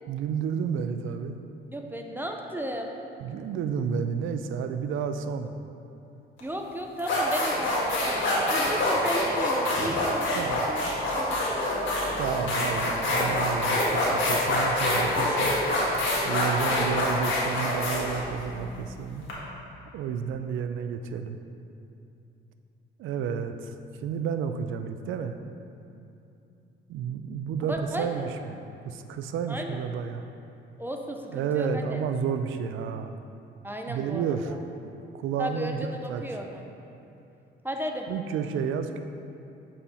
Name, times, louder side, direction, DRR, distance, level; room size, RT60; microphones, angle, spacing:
voice 1, 0.1-1.4 3.2-5.5 10.4-10.7 12.2-15.6 16.2-19.2 19.9-21.4 23.0-23.7 24.0-25.3 26.9-28.6 28.8-30.2 31.3-33.2 33.9-34.6 35.1-36.2 38.1-39.0, right 7 dB, 80° right, 8 dB, 0.4 m, -31 dB
voice 2, 1.7-2.9 6.4-10.9 11.2-11.8 15.2-15.5 27.6-28.2 29.5-29.8 30.8-32.0 33.6-34.6 35.4-36.6 37.6-38.1, equal, 10° right, 2 dB, 0.5 m, -34 dB
sound 1, 6.4-6.5 7.0-19.3, left 1 dB, 75° left, 1.6 m, -26 dB
7.6 x 4.3 x 4.2 m, 2.7 s
cardioid pair, 90°, 20 cm